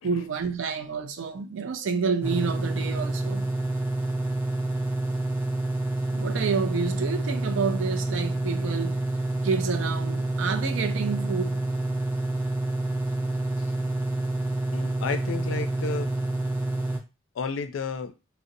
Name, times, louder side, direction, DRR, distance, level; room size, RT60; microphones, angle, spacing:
voice 1, 0.0-3.5 6.1-9.0 9.4-11.6, right 5 dB, 80° right, 0.4 m, -29 dB
sound 1, 2.2-17.0, right 2 dB, 10° right, 0.4 m, -28 dB
voice 2, 14.7-16.1 17.3-18.1, left 5 dB, 85° left, 0.4 m, -32 dB
2.5 x 2.0 x 2.6 m
head